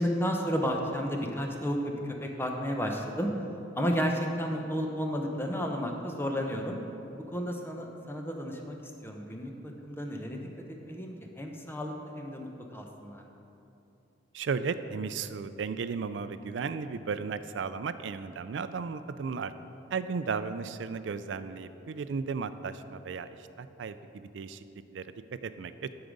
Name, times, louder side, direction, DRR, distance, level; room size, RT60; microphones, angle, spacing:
voice 1, 0.0-3.3 3.8-6.8 7.3-8.8 9.0-10.5 10.8-13.2, equal, 15° left, 2 dB, 0.7 m, -32 dB
voice 2, 14.3-19.5 19.9-24.6 24.9-25.9, right 5 dB, 75° right, 12 dB, 0.4 m, -35 dB
11.5 x 4.8 x 5.2 m, 2.9 s
head